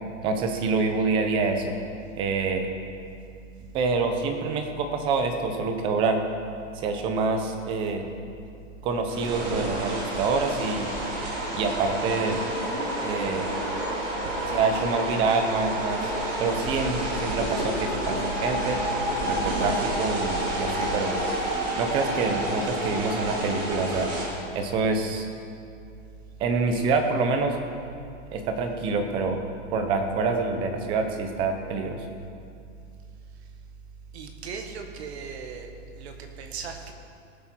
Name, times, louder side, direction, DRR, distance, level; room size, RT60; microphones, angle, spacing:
voice 1, 0.2-1.8 2.2-2.7 3.7-6.2 6.7-8.1 8.8-10.9 11.5-12.4 13.0-13.5 14.5-16.0 16.4-18.8 19.3-21.2 21.8-24.1 24.5-25.3 26.4-27.6 28.3-29.4 29.7-32.0, right 4 dB, 15° right, 5 dB, 0.6 m, -26 dB
sound 1, 9.1-24.3, right 1 dB, 35° right, 3.1 m, -29 dB
voice 2, 34.1-35.7 36.0-36.9, right 5 dB, 55° right, 5 dB, 1.6 m, -38 dB
18.5 x 7.7 x 4.5 m, 2.4 s
hypercardioid pair, 160°, 39 cm